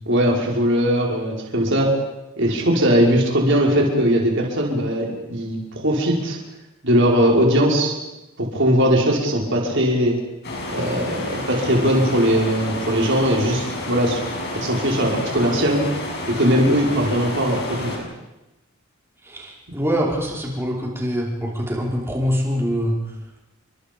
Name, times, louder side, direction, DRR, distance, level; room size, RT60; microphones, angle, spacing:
voice 1, 0.0-1.9 2.4-6.4 6.8-7.9 8.4-10.2 10.7-14.2 14.5-15.8 16.3-18.1, equal, 60° right, -1 dB, 5.1 m, -19 dB
sound 1, 10.4-18.0, left 1 dB, 50° left, 6.7 m, -30 dB
voice 2, 19.2-23.0, equal, 10° right, -3 dB, 5.2 m, -24 dB
29.0 x 25.0 x 5.4 m, 0.96 s
head